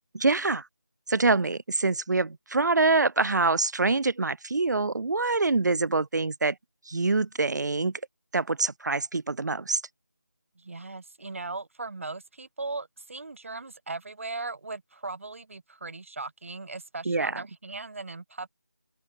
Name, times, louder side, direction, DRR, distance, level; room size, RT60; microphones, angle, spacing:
voice 1, 0.1-0.7 1.1-6.6 6.9-8.0 8.3-9.8 17.1-17.4, right 3 dB, 70° right, 0.5 m, -25 dB
voice 2, 10.6-18.5, right 3 dB, 45° right, 1.7 m, -38 dB
open air
figure-of-eight pair, 175°, 10 cm